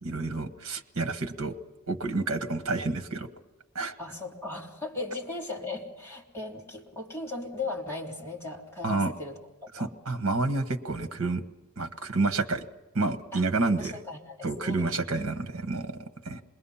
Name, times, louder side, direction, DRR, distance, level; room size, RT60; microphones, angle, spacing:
voice 1, 0.0-1.5 1.9-3.3 3.7-3.9 8.8-9.1 9.7-11.4 11.8-12.7 12.9-14.0 14.4-16.4, right 3 dB, 65° right, 7 dB, 1.3 m, -29 dB
voice 2, 4.0-9.9 13.3-14.9 15.1-15.4, left 3 dB, 10° left, -3 dB, 3.3 m, -38 dB
27.5 x 21.0 x 5.7 m, 1.1 s
head